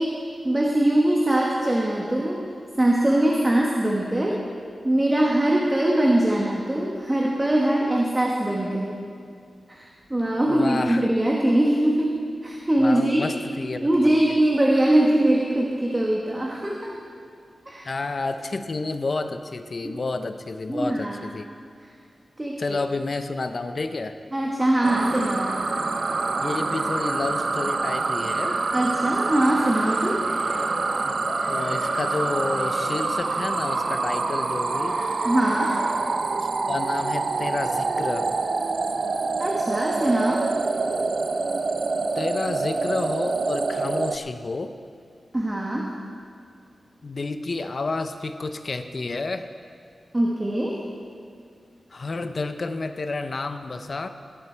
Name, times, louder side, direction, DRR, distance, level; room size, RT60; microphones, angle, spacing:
voice 1, 0.0-2.4 2.8-4.4 4.8-8.9 9.7-13.2 13.8-17.0 17.7-17.9 19.8-19.9 20.7-21.2 22.4-22.8 24.3-25.6 28.7-30.2 35.2-35.8 39.4-40.4 45.3-45.9 50.1-50.8, right 1 dB, 15° right, -2 dB, 1.3 m, -22 dB
voice 2, 10.5-11.1 12.8-14.2 17.9-21.5 22.6-24.2 26.4-28.6 31.0-31.2 31.5-35.1 36.4-38.3 42.2-44.7 47.0-49.5 51.9-54.1, left 3 dB, 45° left, 9 dB, 0.6 m, -30 dB
sound 1, 24.8-44.2, right 3 dB, 50° right, 0.5 m, -26 dB
Laughter, 25.0-35.9, left 2 dB, 80° left, 2.9 m, -38 dB
16.5 x 12.5 x 4.5 m, 2.3 s
wide cardioid pair, 155°, 0 cm